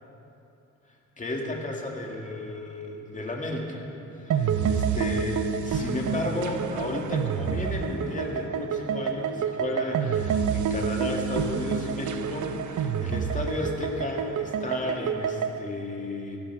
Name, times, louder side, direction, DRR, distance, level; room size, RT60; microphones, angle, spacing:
voice 1, 1.2-3.8 4.1-16.4, left 2 dB, 25° left, 0 dB, 2.3 m, -33 dB
sound 1, 4.3-15.6, right 7 dB, 70° right, 0.8 m, -28 dB
19.0 x 15.0 x 4.8 m, 2.8 s
cardioid pair, 120°, 31 cm